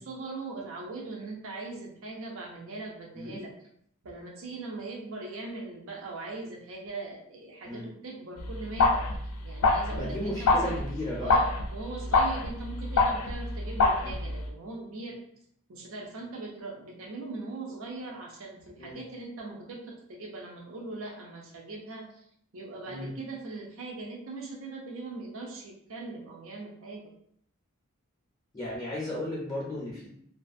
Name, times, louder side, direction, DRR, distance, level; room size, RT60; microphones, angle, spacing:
voice 1, 0.0-3.5 4.0-9.0 9.4-10.8 11.2-15.2 15.7-22.3 22.5-27.1, right 3 dB, 70° right, -1 dB, 0.5 m, -40 dB
sound 1, 8.4-14.5, left 3 dB, 85° left, 0.4 m, -26 dB
voice 2, 9.9-11.4 14.0-14.2 18.8-19.0 22.9-23.1 28.5-30.1, left 1 dB, 15° left, -6 dB, 0.4 m, -35 dB
2.4 x 2.3 x 2.5 m, 0.69 s
head